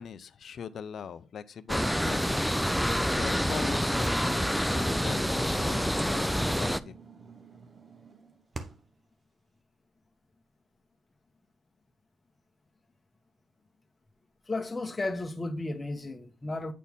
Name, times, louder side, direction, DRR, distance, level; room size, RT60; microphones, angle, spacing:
voice 1, 0.0-7.0, left 7 dB, 55° left, 0.5 m, -41 dB
sound 1, 1.7-6.8, equal, ahead, 0.4 m, -27 dB
sound 2, 2.3-9.0, right 4 dB, 35° right, 0.9 m, -49 dB
voice 2, 14.5-16.7, left 2 dB, 20° left, 1.0 m, -33 dB
8.3 x 4.2 x 3.6 m
cardioid pair, 90°, 0 cm